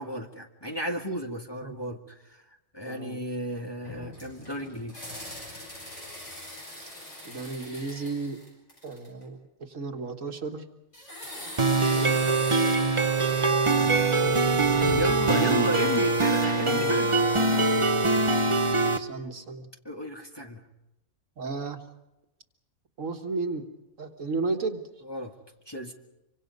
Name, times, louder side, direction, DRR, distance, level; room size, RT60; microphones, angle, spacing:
voice 1, 0.0-2.4 2.7-5.1 14.9-17.7 19.8-20.6 25.0-25.3 25.7-25.9, equal, 20° left, 1 dB, 1.6 m, -34 dB
voice 2, 2.8-3.2 6.8-6.9 7.2-8.4 8.8-10.7 11.9-13.0 16.7-17.0 18.9-19.7 21.4-21.8 23.0-23.7 24.0-24.8, right 3 dB, 65° right, 5 dB, 1.9 m, -34 dB
sound 1, 3.8-9.2 10.9-15.3, left 2 dB, 55° left, 7.8 m, -41 dB
sound 2, 11.6-19.0, right 3 dB, 25° right, 1.0 m, -23 dB
25.5 x 24.5 x 5.3 m, 0.92 s
omnidirectional pair, 1.5 m